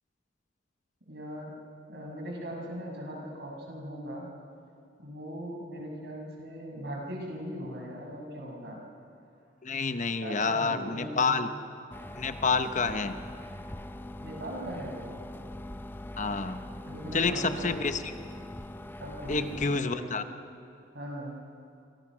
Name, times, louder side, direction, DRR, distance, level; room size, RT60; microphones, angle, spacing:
voice 1, 1.1-1.5 1.9-4.3 5.0-8.8 10.1-11.4 14.2-15.1 16.8-17.7 19.0-20.2 20.9-21.4, equal, 60° right, 0 dB, 6.5 m, -39 dB
voice 2, 9.6-11.5 12.2-13.2 16.2-16.6 17.1-18.0 19.3-20.2, left 4 dB, 40° left, 9 dB, 0.9 m, -28 dB
sound 1, 11.9-19.8, left 1 dB, 10° left, 0.7 m, -42 dB
29.0 x 25.0 x 6.3 m, 2.5 s
head